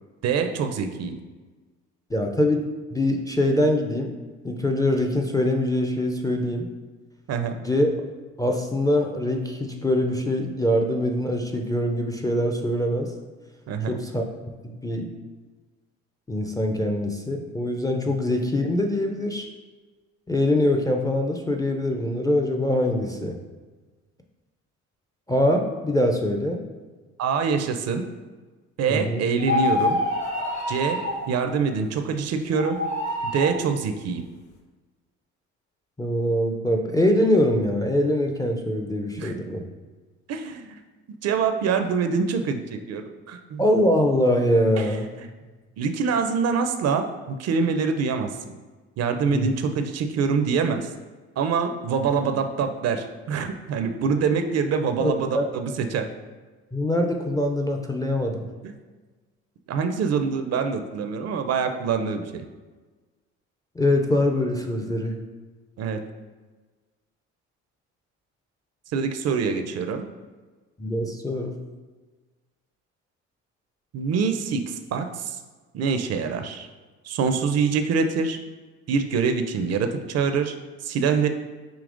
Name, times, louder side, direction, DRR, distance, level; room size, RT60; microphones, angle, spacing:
voice 1, 0.2-1.1 7.3-7.5 13.7-13.9 27.2-28.0 28.8-30.0 30.7-31.0 31.3-32.8 33.2-34.2 39.2-39.3 40.3-40.8 41.2-43.6 44.8-44.9 45.2-45.3 45.8-48.3 49.0-50.9 51.4-56.0 58.6-58.7 59.7-62.4 65.8-66.0 68.9-70.0 73.9-75.4 75.7-76.7 77.0-78.4 78.9-80.5 80.8-81.3, right 5 dB, 50° right, 7 dB, 0.5 m, -25 dB
voice 2, 2.1-2.6 2.9-4.1 4.4-6.7 7.6-7.9 8.4-13.1 13.9-14.2 14.6-15.1 16.3-19.5 20.3-23.4 25.3-26.6 28.9-29.3 36.0-39.6 43.6-45.1 49.3-49.5 55.0-55.5 56.7-58.5 63.8-65.2 70.8-71.5, left 1 dB, 10° left, 2 dB, 0.4 m, -23 dB
sound 1, 29.4-31.2 32.5-33.6, left 2 dB, 50° left, 1.1 m, -26 dB
5.1 x 2.8 x 2.5 m, 1.3 s
hypercardioid pair, 65°, 35 cm